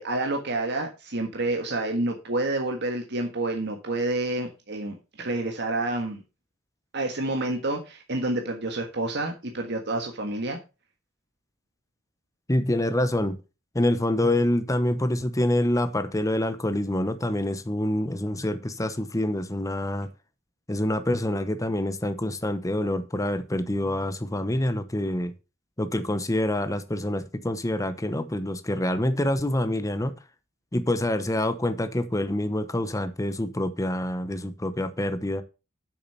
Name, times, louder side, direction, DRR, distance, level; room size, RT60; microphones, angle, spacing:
voice 1, 0.0-6.2 6.9-10.6, right 2 dB, 55° right, 1.6 m, -29 dB
voice 2, 12.5-13.4 13.7-20.1 20.7-25.3 25.8-30.1 30.7-35.4, left 1 dB, 15° left, 0.8 m, -26 dB
8.3 x 6.5 x 5.7 m
head